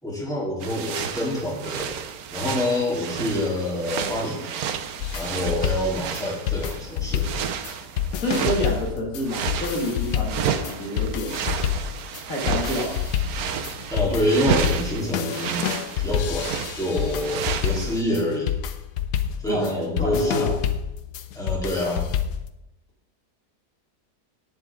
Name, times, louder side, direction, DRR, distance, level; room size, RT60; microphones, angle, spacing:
voice 1, 0.0-1.9 2.3-4.5 5.1-7.3 13.9-15.6 16.0-18.5 19.4-20.5 21.3-22.1, left 1 dB, ahead, -5 dB, 3.6 m, -26 dB
sound 1, 0.6-8.9 9.2-18.0, right 8 dB, 70° right, 1.2 m, -32 dB
sound 2, 5.0-22.5, left 9 dB, 85° left, 1.4 m, -28 dB
voice 2, 8.2-11.4 12.3-13.0 19.5-19.7 20.0-20.5, equal, 55° left, -3 dB, 2.8 m, -28 dB
17.0 x 7.3 x 3.8 m, 0.91 s
omnidirectional pair, 1.7 m